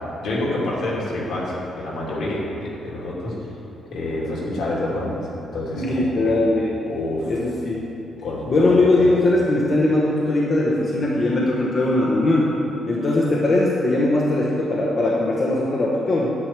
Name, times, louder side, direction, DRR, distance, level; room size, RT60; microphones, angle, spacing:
voice 1, 0.0-3.3 3.9-5.2 5.5-6.4 6.9-7.3 8.2-9.0, left 1 dB, 65° left, -5 dB, 2.6 m, -27 dB
voice 2, 5.7-6.7 7.3-7.8 8.5-12.5 12.9-16.3, left 2 dB, 30° left, -5 dB, 1.0 m, -20 dB
10.0 x 8.8 x 4.6 m, 3.0 s
cardioid pair, 175°, 0 cm